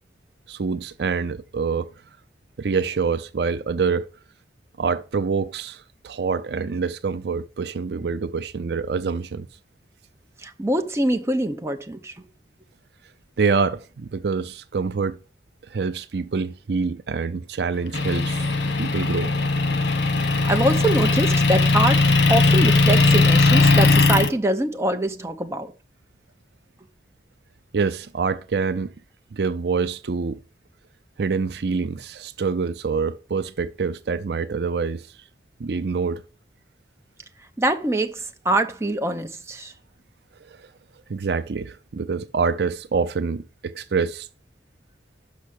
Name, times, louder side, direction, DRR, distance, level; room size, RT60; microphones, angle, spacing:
voice 1, 0.5-1.9 2.6-4.1 4.8-9.5 13.4-15.2 15.6-18.5 18.8-19.3 27.7-28.9 29.3-30.4 31.2-35.1 35.6-36.2 40.4-40.7 41.1-44.3, right 5 dB, 65° right, 0.5 m, -26 dB
voice 2, 10.4-12.2 20.3-25.7 37.6-39.7, right 1 dB, 15° right, 0.7 m, -24 dB
Motor vehicle (road) / Engine, 17.9-24.3, left 3 dB, 90° left, 1.2 m, -18 dB
6.2 x 5.7 x 6.3 m
head